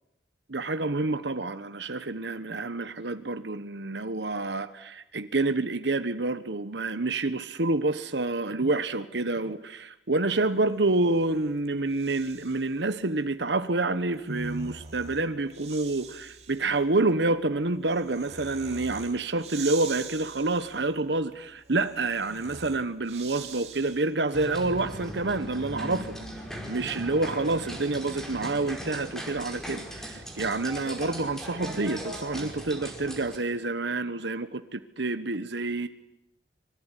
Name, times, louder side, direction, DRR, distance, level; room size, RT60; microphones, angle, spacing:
voice 1, 0.5-26.1 26.7-35.9, right 2 dB, 75° right, 1.2 m, -28 dB
Breathing, 10.8-12.8 14.0-24.3, right 6 dB, 35° right, 3.0 m, -45 dB
sound 1, 24.3-33.4, equal, 5° left, 5.1 m, -39 dB
25.5 x 23.0 x 10.0 m
head